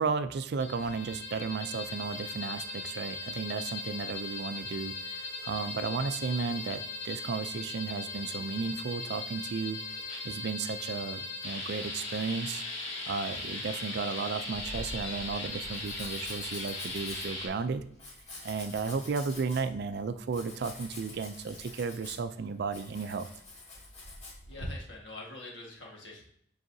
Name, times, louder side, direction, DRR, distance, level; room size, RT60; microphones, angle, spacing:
voice 1, 0.0-9.8 10.2-12.6 13.1-17.8 18.4-23.3, right 4 dB, 60° right, 12 dB, 0.4 m, -34 dB
sound 1, 0.6-17.5, left 3 dB, 85° left, 2.3 m, -39 dB
sound 2, 1.8-16.8, left 2 dB, 10° left, 1.1 m, -61 dB
Domestic sounds home sounds, 14.5-24.7, left 2 dB, 35° left, 2.3 m, -46 dB
voice 2, 24.5-26.3, left 2 dB, 65° left, -2 dB, 1.6 m, -45 dB
7.7 x 4.7 x 2.7 m, 0.69 s
head